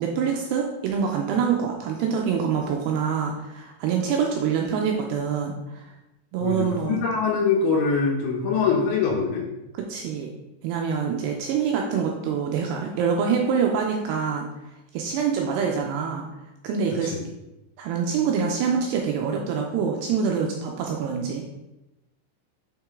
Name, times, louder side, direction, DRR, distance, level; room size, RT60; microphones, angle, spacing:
voice 1, 0.0-5.9 6.3-7.0 9.7-10.3 10.6-14.5 14.9-16.2 16.6-17.1 17.8-21.4, right 6 dB, 85° right, 1 dB, 2.5 m, -25 dB
voice 2, 6.4-9.5 17.0-17.2, left 5 dB, 75° left, -2 dB, 3.0 m, -23 dB
7.4 x 6.0 x 3.6 m, 0.97 s
omnidirectional pair, 5.3 m